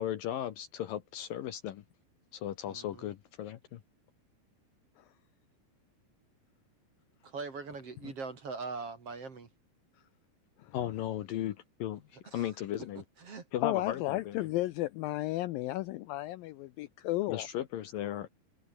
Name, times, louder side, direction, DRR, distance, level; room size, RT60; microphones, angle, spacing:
voice 1, 0.0-1.8 2.3-3.8 8.0-8.1 10.7-12.0 12.3-13.0 13.5-14.5 17.3-18.3, left 11 dB, 65° left, 2.5 m, -36 dB
voice 2, 2.7-3.1 7.2-9.5 12.2-12.5 13.2-13.4, right 4 dB, 40° right, 3.4 m, -41 dB
voice 3, 13.6-17.5, left 17 dB, 85° left, 2.0 m, -33 dB
omnidirectional pair, 4.9 m